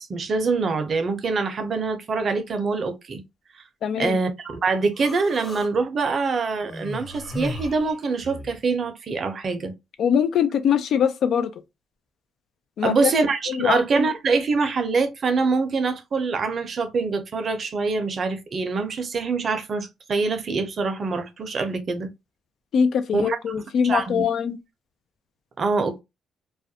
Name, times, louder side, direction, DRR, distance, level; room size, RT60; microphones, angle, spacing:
voice 1, 0.0-3.2 3.5-3.6 4.0-9.7 12.8-22.1 23.1-23.6 23.8-24.2 25.6-26.0, right 4 dB, 50° right, 0.5 m, -24 dB
voice 2, 3.8-4.2 10.0-11.5 12.8-13.1 13.5-13.8 22.7-24.6, left 7 dB, 70° left, 0.3 m, -22 dB
Human voice, 5.0-5.7 6.6-8.6, left 1 dB, 30° left, 0.9 m, -35 dB
2.4 x 2.1 x 2.7 m
cardioid pair, 90°, 0 cm